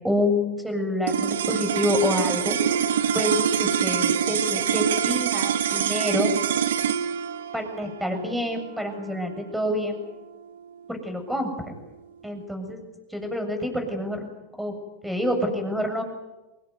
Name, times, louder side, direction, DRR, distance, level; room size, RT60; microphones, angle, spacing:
voice 1, 0.0-2.6 3.1-6.3 7.5-10.0 10.9-11.7 12.2-12.8 13.1-14.3 14.6-14.7 15.0-16.0, left 1 dB, 5° right, 5 dB, 7.2 m, -27 dB
sound 1, 1.0-11.5, right 8 dB, 90° right, 1.4 m, -26 dB
25.5 x 19.5 x 9.4 m, 1.1 s
hypercardioid pair, 110°, 0 cm